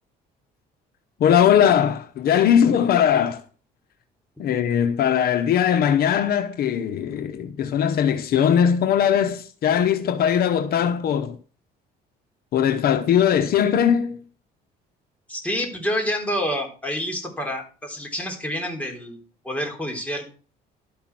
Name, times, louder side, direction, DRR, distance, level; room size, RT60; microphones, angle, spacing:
voice 1, 1.2-3.4 4.4-11.4 12.5-14.2, left 9 dB, 65° left, 1.0 m, -20 dB
voice 2, 15.3-19.2 19.4-20.2, equal, 10° left, 3.5 m, -28 dB
12.0 x 5.9 x 6.0 m
cardioid pair, 110°, 17 cm